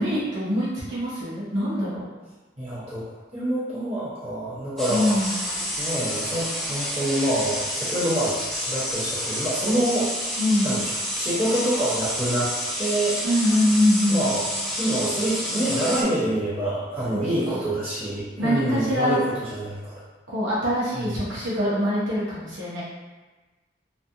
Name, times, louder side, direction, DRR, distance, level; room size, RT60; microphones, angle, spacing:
voice 1, 0.0-2.1 4.9-5.3 10.4-10.7 13.2-14.2 17.1-17.7 18.4-19.2 20.3-22.8, left 1 dB, 90° right, -9 dB, 0.8 m, -24 dB
voice 2, 2.6-3.0 3.3-5.1 5.8-10.1 10.6-13.2 14.1-19.9 20.9-21.3, right 1 dB, 35° right, -12 dB, 1.3 m, -26 dB
sound 1, 4.8-16.0, equal, ahead, 0.3 m, -29 dB
2.4 x 2.3 x 2.7 m, 1.2 s
head